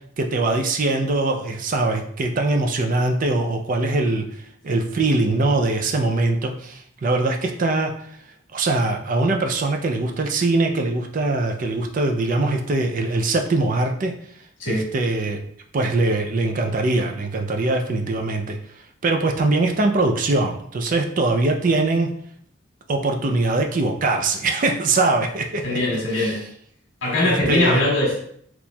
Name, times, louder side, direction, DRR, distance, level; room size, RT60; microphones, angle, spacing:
voice 1, 0.2-7.9 8.5-14.1 14.7-15.4 15.7-18.6 19.0-22.1 22.9-25.8 26.1-26.4 27.2-27.8, right 2 dB, 40° right, 3 dB, 0.4 m, -22 dB
voice 2, 25.6-26.4 27.0-28.2, left 1 dB, 70° left, -4 dB, 1.4 m, -21 dB
4.1 x 2.9 x 2.2 m, 0.65 s
head